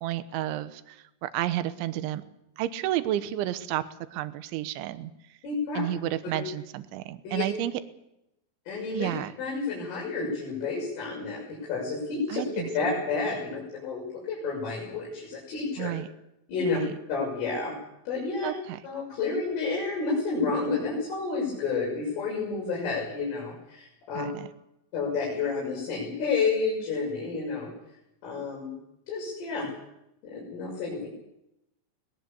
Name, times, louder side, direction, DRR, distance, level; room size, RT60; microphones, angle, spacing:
voice 1, 0.0-1.0 1.2-2.2 2.6-3.8 4.1-5.1 5.7-7.7 8.9-9.3 12.3-12.7 15.8-16.1 16.7-16.9 18.4-18.8 24.2-24.5, right 13 dB, 80° right, 11 dB, 3.4 m, -31 dB
voice 2, 5.4-5.8 6.2-6.4 7.2-7.4 8.7-9.1 9.4-12.4 12.7-15.9 16.5-16.8 17.1-17.8 18.1-18.5 18.8-24.3 24.9-27.7 28.2-28.7 29.1-29.7 30.2-31.1, left 4 dB, 90° left, -4 dB, 9.2 m, -30 dB
23.0 x 20.5 x 7.0 m, 0.85 s
omnidirectional pair, 5.6 m